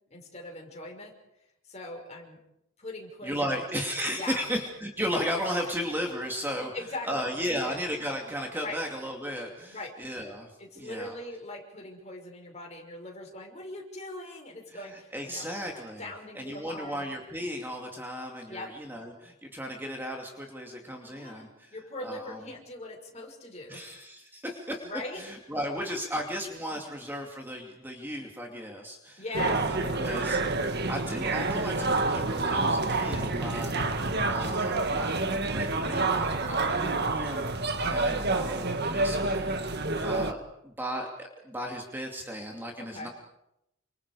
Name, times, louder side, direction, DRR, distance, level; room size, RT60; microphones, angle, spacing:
voice 1, 0.1-1.1 1.6-2.4 2.8-3.6 4.2-4.4 5.6-5.7 6.6-7.8 8.6-8.8 9.7-9.9 10.6-15.5 16.0-17.1 18.5-18.7 21.1-23.9 24.8-25.2 26.7-26.8 29.2-30.2 32.9-33.1 42.8-43.1, left 2 dB, 30° left, 1 dB, 6.2 m, -41 dB
voice 2, 3.2-6.7 7.0-11.2 14.7-16.1 16.3-21.7 22.0-22.4 23.7-24.9 25.2-33.9 34.3-35.1 35.4-43.1, equal, 10° right, 1 dB, 2.7 m, -35 dB
sound 1, 29.3-40.3, right 3 dB, 50° right, 1.7 m, -28 dB
29.5 x 27.0 x 5.0 m, 0.85 s
head